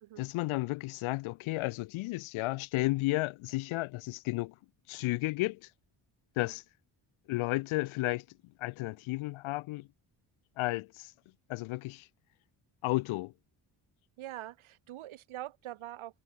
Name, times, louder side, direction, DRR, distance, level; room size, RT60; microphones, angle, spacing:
voice 1, 0.2-4.5 4.9-5.6 6.4-6.6 7.3-8.2 8.6-9.9 10.6-11.1 11.5-12.1 12.8-13.3, left 21 dB, 75° left, 0.6 m, -33 dB
voice 2, 14.2-16.2, right 14 dB, 75° right, 2.1 m, -44 dB
supercardioid pair, 60°, 49 cm